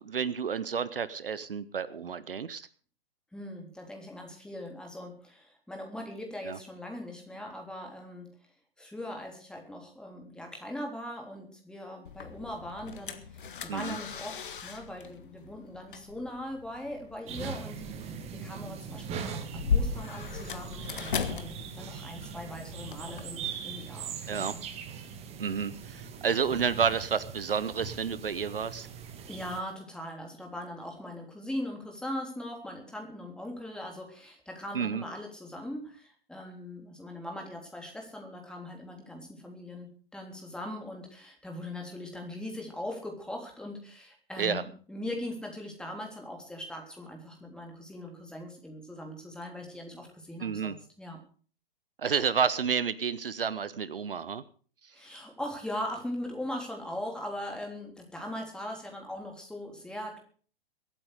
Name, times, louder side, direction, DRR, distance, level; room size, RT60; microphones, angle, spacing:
voice 1, 0.0-2.7 6.4-6.6 13.7-14.0 24.3-24.6 25.4-28.9 34.7-35.0 44.4-44.6 50.4-50.7 52.0-54.4, right 6 dB, 70° right, 16 dB, 0.9 m, -30 dB
voice 2, 3.3-8.3 8.8-24.7 29.3-51.2 54.9-60.2, left 1 dB, 5° left, 1 dB, 3.5 m, -40 dB
sound 1, 12.0-23.2, left 6 dB, 60° left, 1.8 m, -37 dB
sound 2, 17.3-29.6, right 7 dB, 20° right, 1.7 m, -41 dB
23.0 x 9.0 x 4.9 m, 0.43 s
figure-of-eight pair, 110°, 29 cm